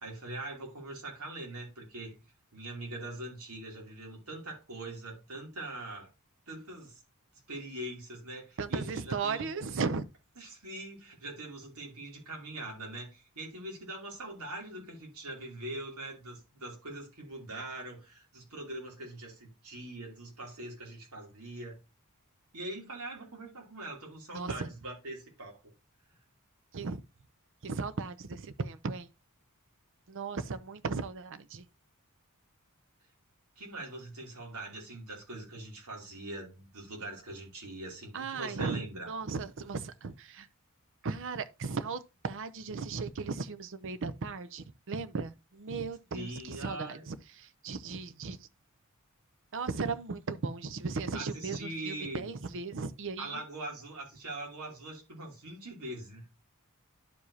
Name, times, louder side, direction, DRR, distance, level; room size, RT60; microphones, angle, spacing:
voice 1, 0.0-2.1 2.5-6.1 6.5-7.0 7.5-9.5 10.4-21.8 22.5-25.6 33.6-39.1 46.1-47.1 51.1-52.3 53.2-56.2, right 1 dB, 85° right, 2.8 m, -42 dB
voice 2, 8.6-10.0 24.3-24.7 26.7-27.0 27.6-29.1 30.1-31.7 38.1-40.5 41.0-48.5 49.5-53.4, right 4 dB, 60° right, 0.6 m, -36 dB
11.0 x 4.8 x 2.7 m
head